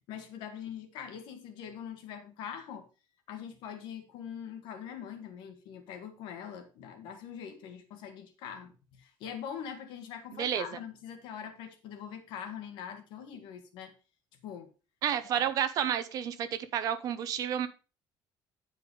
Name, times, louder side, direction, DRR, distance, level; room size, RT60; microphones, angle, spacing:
voice 1, 0.1-2.9 3.3-13.9 14.4-14.7 15.3-15.4, left 8 dB, 70° left, 1.5 m, -43 dB
voice 2, 10.3-10.6 15.0-17.7, right 9 dB, 45° right, 0.8 m, -30 dB
9.7 x 5.0 x 4.7 m
cardioid pair, 180°, 9 cm